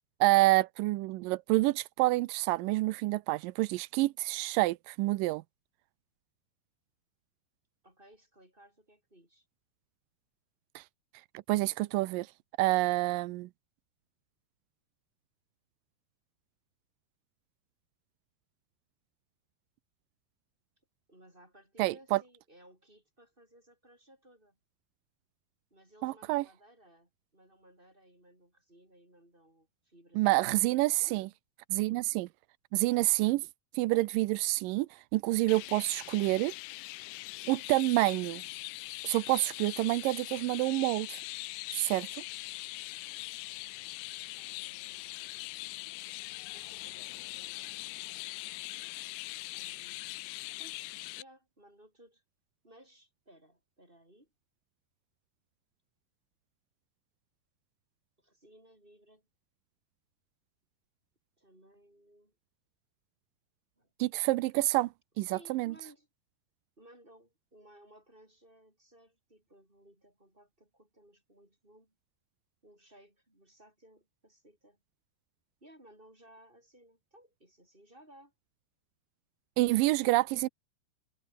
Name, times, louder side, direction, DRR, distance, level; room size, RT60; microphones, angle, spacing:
voice 1, 0.2-5.4 10.8-10.9 11.5-12.3 12.6-13.5 21.8-22.2 26.0-26.5 30.2-31.3 31.7-32.3 32.7-33.5 33.8-36.5 37.5-38.4 39.0-41.2 41.7-42.1 64.0-64.9 65.2-65.7 79.6-80.5, right 19 dB, 90° right, 1.9 m, -28 dB
voice 2, 7.8-9.5 21.1-24.6 25.7-31.4 44.3-45.0 46.5-48.5 49.5-50.0 50.6-52.2 52.6-54.3 58.2-59.3 61.4-62.3 63.8-63.9 65.2-66.1 66.8-71.9 72.6-74.8 75.6-78.3 79.8-80.1, right 1 dB, 10° right, 6.8 m, -60 dB
Chirp tweet, 35.5-51.2, left 22 dB, 90° left, 2.7 m, -42 dB
omnidirectional pair, 4.7 m